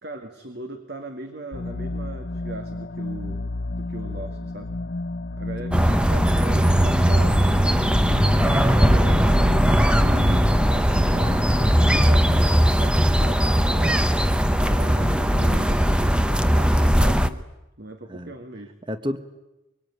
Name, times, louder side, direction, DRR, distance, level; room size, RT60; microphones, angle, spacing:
voice 1, 0.0-3.5 3.7-4.7 5.3-7.6 8.4-14.1 14.8-17.5 17.8-18.7, right 1 dB, 55° right, 6 dB, 2.0 m, -38 dB
sound 1, 1.5-12.4, left 2 dB, 50° left, 0.9 m, -32 dB
sound 2, 5.7-17.3, equal, 5° right, 0.9 m, -19 dB
voice 2, 8.1-9.3 11.1-11.4 14.6-15.3 18.1-18.3 18.8-19.2, equal, 25° right, 10 dB, 1.3 m, -34 dB
24.0 x 24.0 x 9.7 m, 0.97 s
head